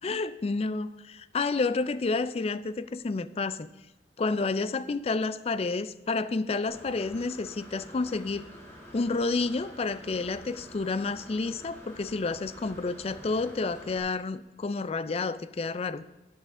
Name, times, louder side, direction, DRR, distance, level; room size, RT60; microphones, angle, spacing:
voice 1, 0.0-3.7 4.2-8.5 8.9-16.0, left 3 dB, 35° left, 15 dB, 0.4 m, -30 dB
Engine / Mechanisms, 6.7-14.0, equal, 15° left, 2.5 m, -48 dB
12.0 x 8.9 x 3.6 m, 1.0 s
head